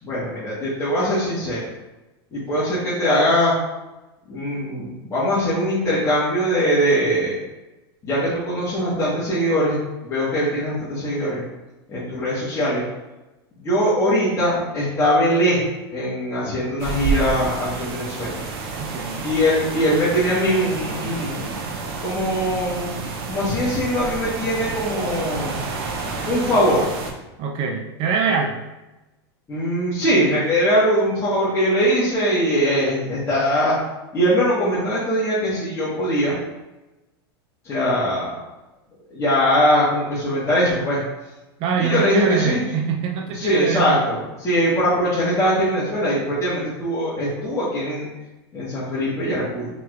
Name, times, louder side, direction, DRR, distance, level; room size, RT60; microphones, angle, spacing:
voice 1, 0.0-1.7 2.3-3.5 4.3-7.3 8.0-11.4 11.9-12.8 13.6-15.6 15.9-18.4 19.2-21.5 22.0-22.9 23.3-25.6 26.2-26.8 29.5-33.7 34.1-36.4 37.6-38.3 39.1-41.0 41.8-42.6 43.3-48.1 48.5-49.7, equal, 20° left, -10 dB, 1.5 m, -21 dB
sound 1, 16.8-27.1, right 4 dB, 75° right, 0.8 m, -29 dB
voice 2, 18.8-19.2 27.4-28.6 41.6-44.0, right 6 dB, 45° right, 1 dB, 0.6 m, -24 dB
5.6 x 3.1 x 2.5 m, 1.0 s
hypercardioid pair, 115°, 13 cm